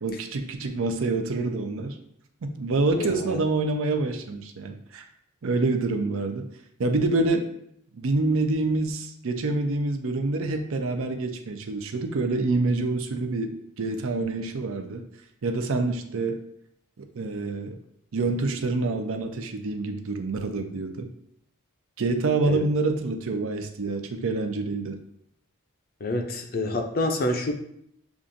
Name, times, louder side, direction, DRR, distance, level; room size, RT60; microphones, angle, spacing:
voice 1, 0.0-2.0 2.4-5.0 5.4-6.5 6.8-7.5 8.0-15.0 15.4-16.4 17.0-17.8 18.1-21.1 22.0-25.0, right 3 dB, 65° right, 6 dB, 0.5 m, -27 dB
voice 2, 2.9-3.4 22.5-22.6 26.0-27.5, left 1 dB, 45° left, 5 dB, 0.5 m, -27 dB
7.0 x 2.4 x 2.6 m, 0.72 s
head